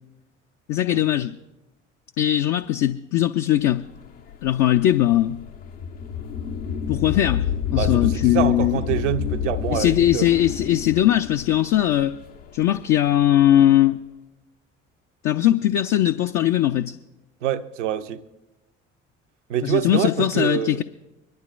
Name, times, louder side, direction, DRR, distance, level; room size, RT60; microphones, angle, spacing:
voice 1, 0.7-1.3 2.2-3.8 4.4-5.4 6.9-8.8 9.7-12.2 12.5-14.0 15.2-16.9 19.6-20.8, left 12 dB, 55° left, 0.6 m, -20 dB
sound 1, 4.0-12.9, left 8 dB, 75° left, 1.3 m, -29 dB
voice 2, 6.9-7.4 7.7-10.3 17.4-18.2 19.5-20.8, right 10 dB, 75° right, 0.8 m, -26 dB
25.0 x 12.0 x 2.5 m
figure-of-eight pair, 50°, 36 cm